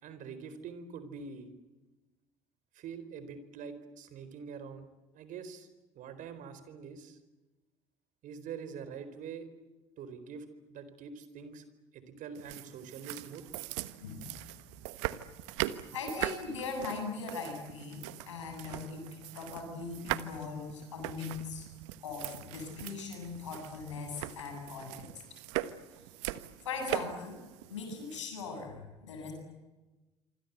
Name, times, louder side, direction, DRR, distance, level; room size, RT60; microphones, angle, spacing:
voice 1, 0.0-1.6 2.7-4.9 5.1-5.7 5.9-7.2 8.2-9.5 10.0-11.6 11.9-13.4, right 6 dB, 60° right, 12 dB, 4.3 m, -45 dB
sound 1, 12.4-28.2, right 16 dB, 75° right, 1.3 m, -41 dB
voice 2, 15.9-19.1 19.3-21.7 22.0-25.1 26.6-27.4 27.7-29.3, left 4 dB, 90° left, 3 dB, 8.0 m, -40 dB
27.0 x 25.0 x 8.2 m, 1.1 s
hypercardioid pair, 60°, 15 cm